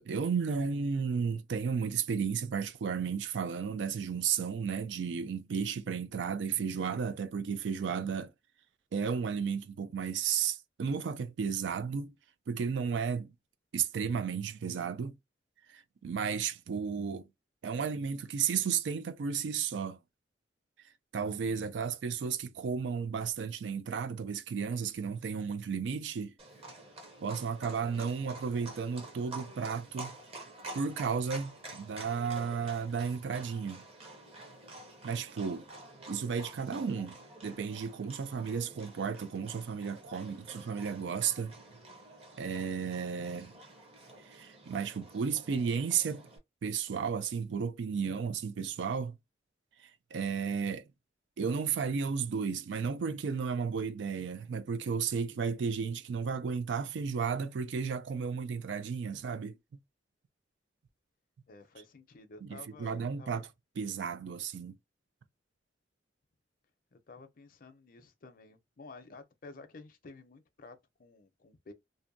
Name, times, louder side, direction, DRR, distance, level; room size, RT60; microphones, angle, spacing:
voice 1, 0.0-8.3 8.9-12.1 12.5-13.3 13.7-15.2 15.7-17.3 17.6-20.0 21.1-26.3 27.2-30.1 30.7-33.8 35.0-35.7 36.1-37.2 37.4-41.5 42.4-43.5 44.2-46.3 46.6-49.2 49.8-50.8 51.4-59.5 62.4-63.5 63.8-64.8, right 6 dB, 75° right, 0.4 m, -33 dB
Livestock farm animals working animals, 26.4-46.4, right 2 dB, 35° right, 0.7 m, -49 dB
voice 2, 61.5-63.4 66.9-71.7, left 3 dB, 50° left, 0.5 m, -52 dB
2.6 x 2.1 x 2.6 m
head